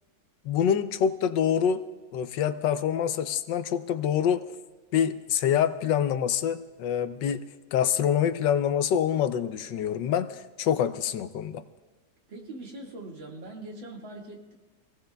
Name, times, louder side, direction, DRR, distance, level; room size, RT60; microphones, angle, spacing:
voice 1, 0.4-1.8 2.1-4.4 4.9-7.4 7.7-11.6, left 9 dB, 75° left, 11 dB, 1.3 m, -26 dB
voice 2, 12.3-14.5, right 2 dB, 80° right, 0 dB, 2.8 m, -42 dB
26.5 x 17.5 x 2.3 m, 1.2 s
omnidirectional pair, 2.1 m